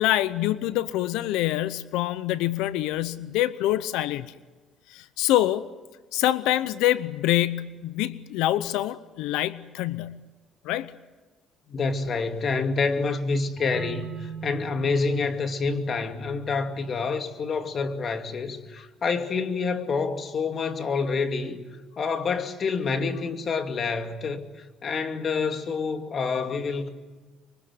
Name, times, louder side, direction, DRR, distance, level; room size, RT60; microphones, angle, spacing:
voice 1, 0.0-4.3 4.9-5.7 6.1-10.2 10.6-10.9, left 14 dB, 90° left, 0.7 m, -25 dB
voice 2, 11.7-21.6 22.0-24.4 24.8-26.9, left 4 dB, 45° left, 2.5 m, -27 dB
sound 1, 13.6-19.0, right 5 dB, 50° right, 2.6 m, -43 dB
25.5 x 24.0 x 8.0 m
cardioid pair, 95°, 0 cm